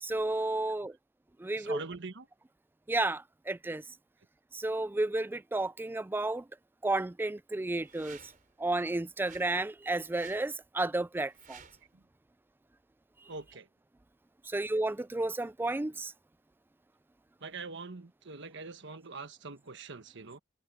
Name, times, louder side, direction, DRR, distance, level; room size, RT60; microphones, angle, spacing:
voice 1, 0.0-1.0 1.4-1.8 2.9-3.8 4.5-6.4 6.8-8.2 8.6-11.6 14.5-16.1, right 2 dB, 10° right, 0.3 m, -32 dB
voice 2, 1.6-2.3 13.3-13.7 17.4-20.4, right 4 dB, 65° right, 1.3 m, -43 dB
sound 1, 7.7-8.5 9.2-9.5 10.1-10.5 11.3-11.9, right 7 dB, 45° right, 4.2 m, -54 dB
head